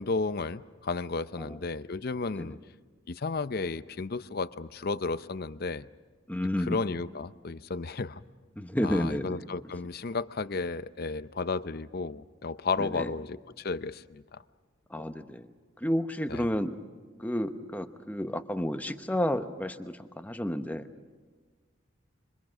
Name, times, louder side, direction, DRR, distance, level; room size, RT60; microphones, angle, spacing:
voice 1, 0.0-2.6 3.1-5.9 6.6-8.2 8.8-14.4 15.0-15.1 16.3-16.5, left 4 dB, 50° left, 14 dB, 0.6 m, -33 dB
voice 2, 6.3-6.8 8.6-9.4 12.8-13.1 14.9-15.5 15.8-16.8 17.2-20.9, equal, 10° left, 8 dB, 0.9 m, -31 dB
26.0 x 25.5 x 6.3 m, 1.5 s
head